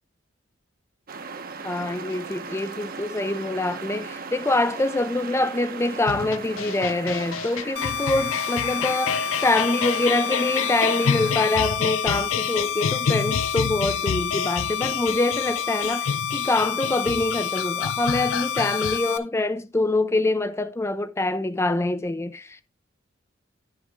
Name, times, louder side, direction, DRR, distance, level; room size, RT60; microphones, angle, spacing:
sound 1, 1.1-11.3, right 5 dB, 45° right, 0.9 m, -37 dB
voice 1, 1.6-22.6, left 2 dB, 15° left, 0.4 m, -25 dB
sound 2, 6.1-19.0, left 7 dB, 90° left, 0.5 m, -29 dB
sound 3, 7.8-19.2, left 8 dB, 60° left, 0.9 m, -29 dB
10.5 x 6.5 x 3.5 m
head